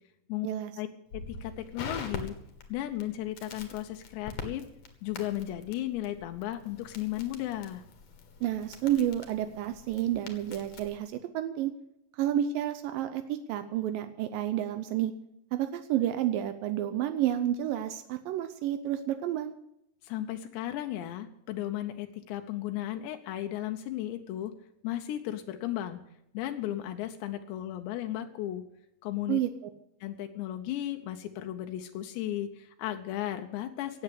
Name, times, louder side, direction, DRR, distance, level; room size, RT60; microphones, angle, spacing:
voice 1, 1.1-2.4 2.7-4.6 5.0-7.8 20.0-24.5 24.8-26.0 26.3-28.7 29.0-29.4 30.0-34.0, left 13 dB, 85° left, 6 dB, 3.0 m, -35 dB
Crackle, 1.1-11.0, left 4 dB, 55° left, 2.3 m, -44 dB
voice 2, 8.4-11.7 12.1-15.1 15.5-19.5 29.3-29.5, right 11 dB, 85° right, 9 dB, 2.0 m, -30 dB
17.5 x 7.8 x 8.2 m, 0.80 s
omnidirectional pair, 4.9 m